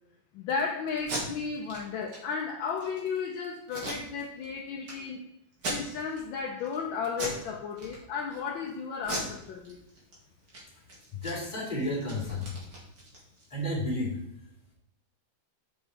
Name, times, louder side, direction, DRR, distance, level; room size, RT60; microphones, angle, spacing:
voice 1, 0.3-5.2 5.7-9.8, left 5 dB, 80° left, 0 dB, 1.5 m, -34 dB
Packing tape duct tape, 1.0-1.2 1.7-1.8 2.1-2.2 2.6-3.0 3.7-4.5 4.8-4.9 5.5-6.2 6.6-6.8 7.1-7.4 7.8-8.4 9.0-10.1 10.4-10.6 10.9-13.5, right 2 dB, 60° right, 2.6 m, -38 dB
voice 2, 11.1-12.5 13.5-14.2, left 1 dB, 20° left, -4 dB, 2.2 m, -32 dB
6.4 x 5.4 x 4.6 m, 0.79 s
omnidirectional pair, 2.1 m